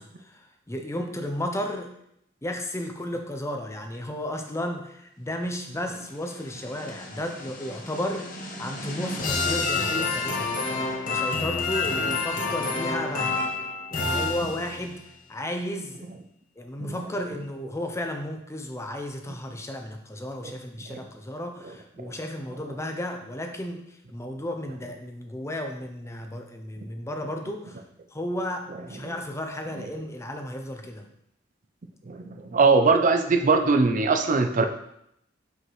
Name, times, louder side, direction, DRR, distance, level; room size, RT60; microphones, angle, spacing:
voice 1, 0.0-1.9 2.4-10.5 11.1-13.5 13.9-15.0 15.3-16.1 16.6-27.8 28.1-31.1, left 1 dB, 15° left, 4 dB, 0.5 m, -33 dB
sound 1, 6.0-15.0, left 3 dB, 45° left, 0.9 m, -29 dB
voice 2, 32.1-34.6, right 4 dB, 45° right, 5 dB, 0.5 m, -21 dB
5.7 x 5.3 x 3.1 m, 0.76 s
head